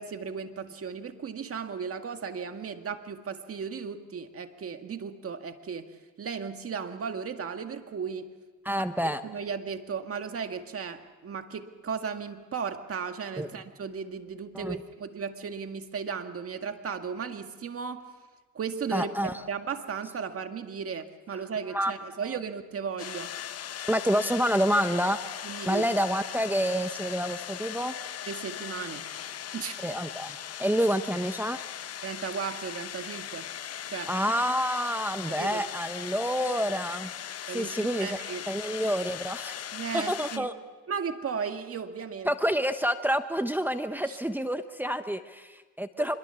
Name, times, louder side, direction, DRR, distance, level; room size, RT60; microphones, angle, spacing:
voice 1, 0.0-5.9 6.2-8.3 9.2-18.1 18.5-23.3 25.4-25.8 28.3-29.1 29.5-29.8 32.0-33.5 33.9-34.1 35.4-35.7 37.5-38.5 39.7-40.5 40.9-42.3 44.1-44.2 46.0-46.1, right 6 dB, 50° right, 6 dB, 2.0 m, -35 dB
voice 2, 8.6-9.2 13.4-13.5 14.5-14.8 18.9-19.3 21.7-21.9 22.3-22.4 23.9-25.2 25.7-27.9 29.8-31.6 34.1-37.1 37.5-38.2 38.5-39.6 39.9-40.5 42.2-46.1, equal, 5° right, 8 dB, 1.0 m, -28 dB
sound 1, 23.0-40.4, left 10 dB, 55° left, 0.9 m, -39 dB
25.5 x 22.5 x 7.1 m, 1.3 s
cardioid pair, 90°, 30 cm